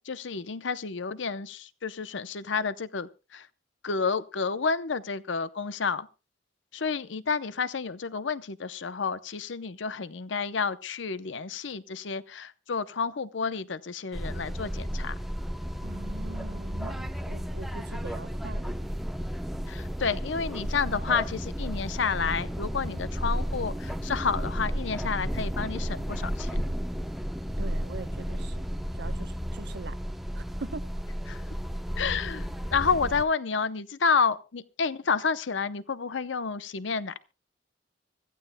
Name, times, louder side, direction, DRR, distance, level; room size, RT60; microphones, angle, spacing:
voice 1, 0.1-3.5 3.8-6.1 6.7-15.1 19.7-26.7 31.3-31.4 32.0-37.1, left 5 dB, 70° left, 0.7 m, -30 dB
sound 1, 14.1-33.2, equal, ahead, 0.8 m, -33 dB
voice 2, 15.8-18.8 27.6-28.6 28.9-30.0 30.3-30.9, right 3 dB, 60° right, 0.8 m, -42 dB
25.0 x 14.5 x 2.2 m
head